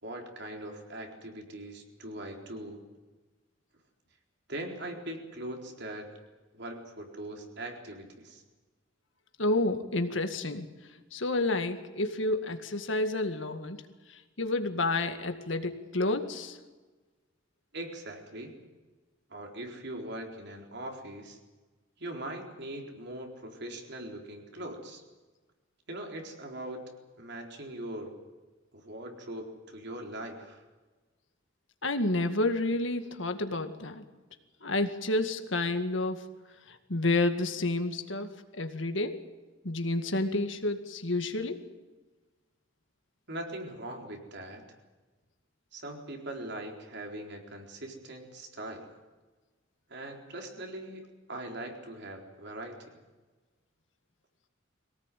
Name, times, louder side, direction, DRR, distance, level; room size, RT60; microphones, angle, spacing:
voice 1, 0.0-2.8 4.5-6.1 6.5-8.4 17.7-18.5 19.3-21.4 22.0-25.0 25.9-26.8 27.2-28.2 28.7-30.6 43.3-44.6 45.7-48.9 49.9-51.0 51.3-52.8, right 1 dB, 60° right, 2 dB, 4.2 m, -41 dB
voice 2, 9.4-10.7 11.1-13.8 14.4-16.6 31.8-34.0 34.6-36.3 36.7-39.2 39.6-41.6, left 2 dB, 70° left, 7 dB, 2.1 m, -30 dB
23.5 x 18.0 x 9.3 m, 1.2 s
head